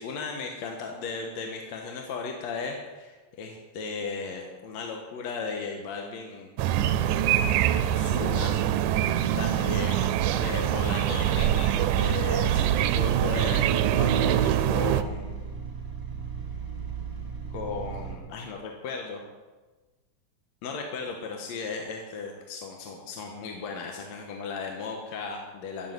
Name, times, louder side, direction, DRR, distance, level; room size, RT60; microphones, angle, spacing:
voice 1, 0.0-6.5 7.6-8.9 9.4-15.4 17.5-19.2 20.6-25.9, left 4 dB, 65° left, 1 dB, 2.3 m, -36 dB
sound 1, 6.6-15.0, right 11 dB, 85° right, 2.2 m, -24 dB
sound 2, 11.1-18.2, right 6 dB, 10° right, 1.7 m, -37 dB
14.0 x 7.1 x 9.6 m, 1.3 s
omnidirectional pair, 3.6 m